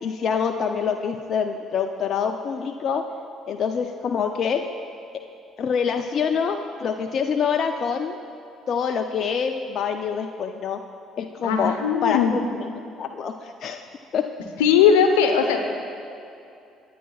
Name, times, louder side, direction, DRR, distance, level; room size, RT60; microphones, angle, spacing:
voice 1, 0.0-3.0 3.5-4.6 5.6-8.2 8.7-10.8 11.2-11.7 12.0-12.4 13.0-13.8 14.1-14.3, left 6 dB, 55° left, 5 dB, 0.5 m, -25 dB
voice 2, 11.4-12.3 14.6-15.6, left 7 dB, 90° left, 5 dB, 0.9 m, -18 dB
23.5 x 9.3 x 2.4 m, 2.6 s
hypercardioid pair, 65°, 0 cm